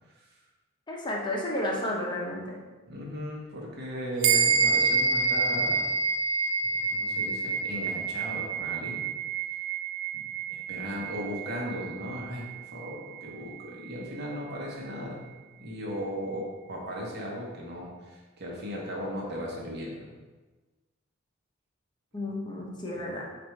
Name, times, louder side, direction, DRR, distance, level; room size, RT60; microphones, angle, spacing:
voice 1, 0.9-2.6 22.1-23.2, left 1 dB, 25° left, -2 dB, 0.7 m, -32 dB
voice 2, 2.9-5.9 6.7-9.1 10.1-12.4 12.7-15.2 15.6-20.1 22.9-23.1, equal, 55° right, -2 dB, 1.0 m, -37 dB
sound 1, 4.2-14.0, right 4 dB, 85° right, 0.4 m, -28 dB
4.2 x 2.6 x 4.4 m, 1.3 s
head